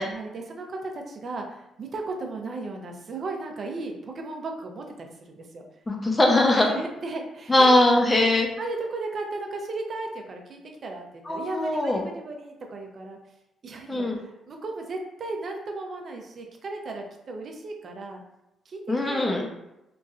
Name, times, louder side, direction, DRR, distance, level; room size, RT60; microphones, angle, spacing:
voice 1, 0.0-5.6 6.6-7.7 8.1-8.3 8.6-13.2 13.6-18.2 18.7-19.5, right 3 dB, 50° right, 2 dB, 0.5 m, -35 dB
voice 2, 5.9-6.7 7.5-8.5 11.3-12.0 13.9-14.2 18.9-19.4, left 2 dB, 20° left, 1 dB, 0.6 m, -21 dB
3.0 x 2.5 x 2.4 m, 0.90 s
cardioid pair, 90°, 0 cm